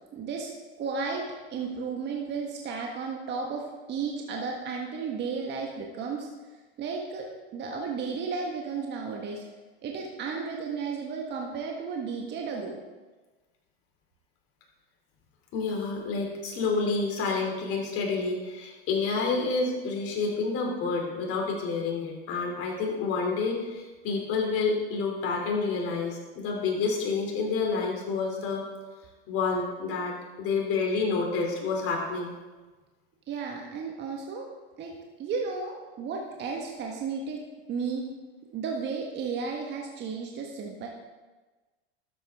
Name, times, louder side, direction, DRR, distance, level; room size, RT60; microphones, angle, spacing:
voice 1, 0.1-0.5 0.8-6.3 6.8-9.4 9.8-12.8 33.3-34.5 34.8-34.9 35.2-37.4 37.7-38.0 38.5-40.9, right 5 dB, 35° right, 0 dB, 1.5 m, -33 dB
voice 2, 15.5-28.7 29.3-32.3, left 4 dB, 45° left, 0 dB, 3.0 m, -29 dB
12.5 x 8.4 x 3.6 m, 1.3 s
hypercardioid pair, 105°, 31 cm